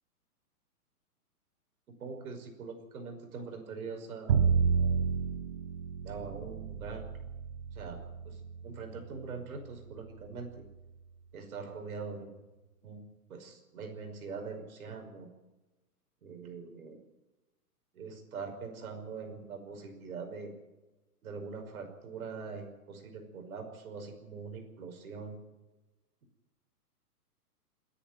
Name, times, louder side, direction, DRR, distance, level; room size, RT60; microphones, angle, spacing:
voice 1, 2.0-5.0 6.0-7.1 7.7-10.7 11.3-12.3 12.8-13.0 13.3-15.3 16.2-17.0 17.9-20.5 21.2-25.4, right 5 dB, 65° right, 5 dB, 5.5 m, -43 dB
Bowed string instrument, 4.3-10.4, right 6 dB, 35° right, 0.8 m, -31 dB
29.5 x 10.0 x 9.0 m, 1.1 s
hypercardioid pair, 155°, 47 cm